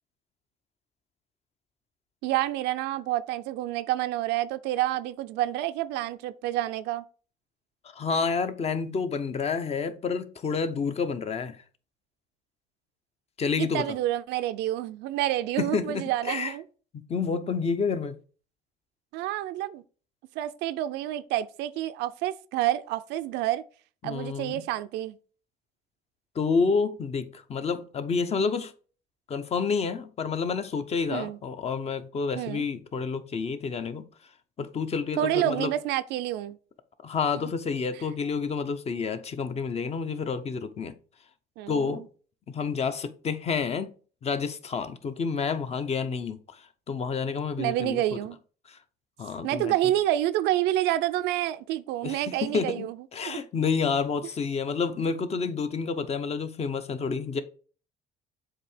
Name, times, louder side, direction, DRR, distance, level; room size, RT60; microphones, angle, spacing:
voice 1, 2.2-7.0 13.6-16.6 19.1-19.8 20.4-23.6 24.0-25.2 31.1-31.4 32.4-32.6 35.2-36.6 41.6-42.0 47.6-48.4 49.4-53.0 53.3-53.4, right 14 dB, 90° right, 0.5 m, -28 dB
voice 2, 7.9-11.6 13.4-13.9 15.6-16.5 16.9-18.2 24.0-24.6 26.3-28.7 29.3-34.0 34.6-35.7 37.0-40.9 41.7-42.0 42.5-43.9 44.2-48.0 48.7-48.8 49.2-49.7 52.0-52.9 53.1-57.4, left 5 dB, 40° left, 0.8 m, -29 dB
7.4 x 2.8 x 5.0 m
cardioid pair, 110°, 17 cm